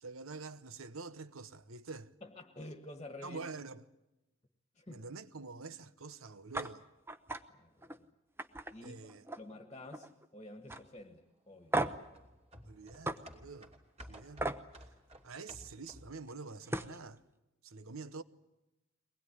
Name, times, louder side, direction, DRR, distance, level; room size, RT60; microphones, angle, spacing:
voice 1, 0.0-2.1 3.2-3.8 4.9-6.9 8.8-9.2 12.7-13.7 14.1-14.6 15.2-17.2 17.6-18.2, right 4 dB, 80° right, 1.0 m, -46 dB
voice 2, 2.2-3.4 4.7-5.0 7.5-8.1 8.7-9.0 9.4-12.1, left 1 dB, 25° left, 1.7 m, -50 dB
sound 1, 6.5-6.7 7.1-7.4 7.8-8.0 8.4-9.6 9.8-10.3 10.7-10.8 11.7-12.1 13.0-13.2 14.4-14.6 16.3-16.4 16.7-17.0, right 2 dB, 10° right, 0.8 m, -36 dB
sound 2, 11.8-16.2 16.6-16.7, equal, 30° right, 2.9 m, -53 dB
23.0 x 20.0 x 9.9 m
head